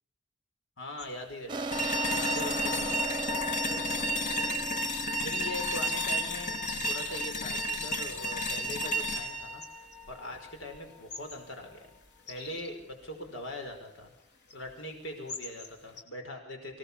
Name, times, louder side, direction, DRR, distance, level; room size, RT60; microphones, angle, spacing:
voice 1, 0.8-4.3 5.2-6.6 6.8-11.9 12.3-14.1 14.5-16.8, left 1 dB, 80° left, 4 dB, 5.3 m, -42 dB
sound 1, 1.0-16.0, left 4 dB, 60° left, 3.5 m, -50 dB
sound 2, 1.5-6.8, right 3 dB, 25° right, 0.9 m, -37 dB
sound 3, 1.7-10.8, equal, 40° left, 2.0 m, -32 dB
25.5 x 17.5 x 7.2 m, 0.64 s
head